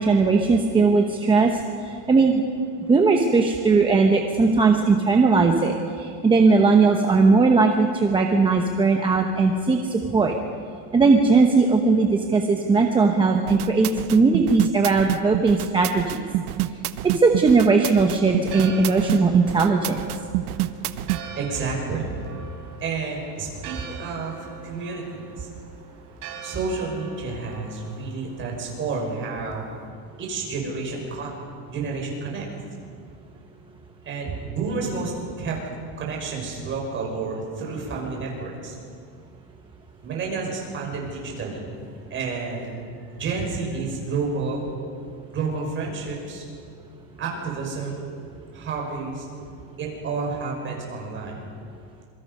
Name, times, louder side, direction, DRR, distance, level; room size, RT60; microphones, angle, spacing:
voice 1, 0.0-1.6 2.1-2.4 2.9-10.3 10.9-16.2 17.0-20.0, right 4 dB, 10° right, 2 dB, 0.9 m, -19 dB
sound 1, 13.3-21.2, right 17 dB, 85° right, 1.1 m, -27 dB
Church bell, 18.3-29.9, right 5 dB, 50° right, 3.7 m, -43 dB
voice 2, 21.4-22.1 22.8-25.5 26.4-29.6 30.2-31.3 31.7-32.5 34.0-35.6 36.0-38.8 40.0-42.8 43.1-44.7 45.3-46.4 47.2-48.0 48.5-49.3 49.8-51.4, right 4 dB, 25° right, -1 dB, 5.8 m, -30 dB
26.5 x 23.5 x 5.5 m, 2.3 s
cardioid pair, 170°, 44 cm